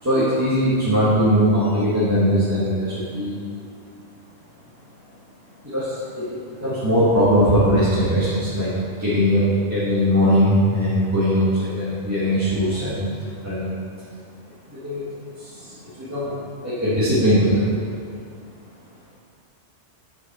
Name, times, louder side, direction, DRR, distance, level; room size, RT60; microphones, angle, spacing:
voice 1, 0.0-3.4 5.6-8.7 9.0-13.7 14.7-15.0 15.3-16.3 16.6-17.7, equal, 15° right, -12 dB, 1.6 m, -20 dB
7.5 x 6.2 x 4.2 m, 2.3 s
omnidirectional pair, 1.2 m